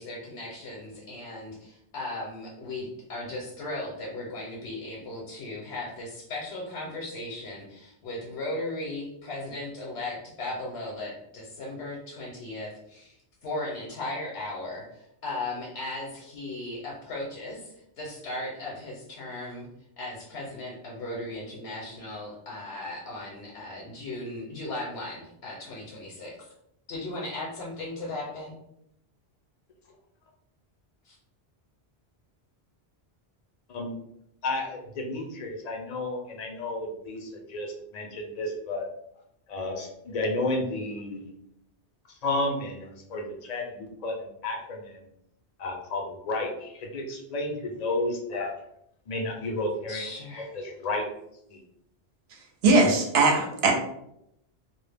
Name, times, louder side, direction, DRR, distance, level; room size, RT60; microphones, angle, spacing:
voice 1, 0.0-19.7 20.0-26.5 26.9-28.6 31.0-31.2 49.9-50.5, left 2 dB, 80° left, -3 dB, 0.9 m, -37 dB
voice 2, 34.4-38.9 39.5-41.3 42.1-45.0 45.6-48.6 49.1-50.1 50.5-51.0 51.5-51.6, left 2 dB, 55° left, 1 dB, 0.5 m, -32 dB
voice 3, 52.6-53.7, right 3 dB, 75° right, 1 dB, 0.8 m, -20 dB
2.2 x 2.0 x 3.2 m, 0.78 s
omnidirectional pair, 1.1 m